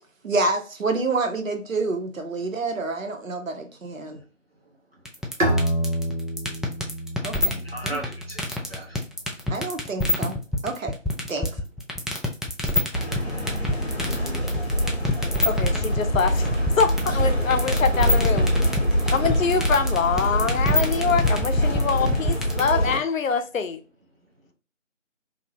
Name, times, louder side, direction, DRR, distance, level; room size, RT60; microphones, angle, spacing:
voice 1, 0.2-4.2 7.2-7.6 7.8-8.0 9.5-10.4 10.6-10.9 11.3-11.5, right 3 dB, 90° right, 0.7 m, -28 dB
sound 1, 5.1-22.7, left 1 dB, ahead, 0.3 m, -26 dB
Bowed string instrument, 5.4-8.9, right 1 dB, 75° right, 1.0 m, -28 dB
voice 2, 7.5-9.0, right 1 dB, 50° right, 0.9 m, -38 dB
sound 2, 12.9-23.0, equal, 55° left, 0.8 m, -24 dB
voice 3, 15.4-16.5 16.8-18.5 19.1-23.8, left 5 dB, 90° left, 0.5 m, -24 dB
2.6 x 2.1 x 2.7 m
figure-of-eight pair, 175°, 39 cm